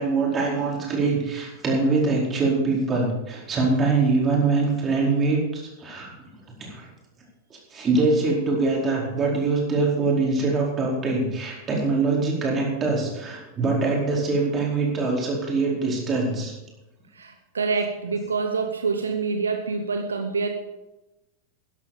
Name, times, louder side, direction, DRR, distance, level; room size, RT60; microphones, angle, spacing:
voice 1, 0.0-6.1 6.6-6.9 7.7-16.6, right 3 dB, 25° right, -2 dB, 4.6 m, -23 dB
voice 2, 17.1-20.5, right 4 dB, 70° right, 6 dB, 0.9 m, -26 dB
13.5 x 11.0 x 5.1 m, 1.0 s
figure-of-eight pair, 90°, 0 cm